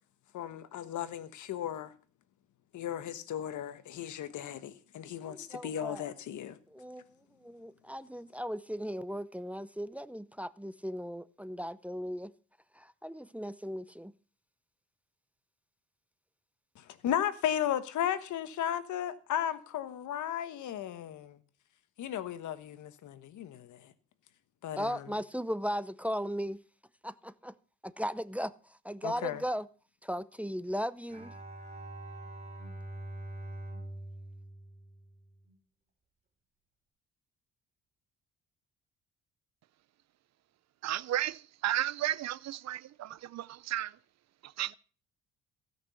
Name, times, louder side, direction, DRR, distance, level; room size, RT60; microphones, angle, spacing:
voice 1, 0.3-1.9 2.7-6.6 16.8-21.4 22.0-23.9 24.6-25.1 29.0-29.4, left 10 dB, 75° left, 1.3 m, -35 dB
voice 2, 5.2-6.0 6.7-7.1 7.4-12.3 12.8-14.1 24.8-26.6 27.0-27.5 27.8-28.5 28.8-29.7 30.0-31.3, equal, 5° right, 0.6 m, -37 dB
Bowed string instrument, 31.1-35.5, right 1 dB, 20° right, 4.2 m, -44 dB
voice 3, 40.8-43.9 44.4-44.7, right 13 dB, 60° right, 0.6 m, -33 dB
16.0 x 6.1 x 7.0 m
cardioid pair, 90°, 30 cm